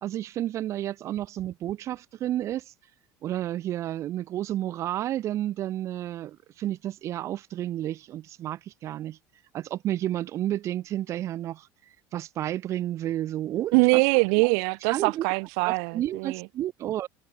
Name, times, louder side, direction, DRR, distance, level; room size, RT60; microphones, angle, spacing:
voice 1, 0.0-2.6 3.2-9.2 9.5-11.7 12.1-14.0 14.9-15.2 15.6-17.1, right 13 dB, 45° right, 3.5 m, -31 dB
voice 2, 13.7-16.4, right 40 dB or more, 75° right, 2.9 m, -23 dB
cardioid pair, 145°, 7 cm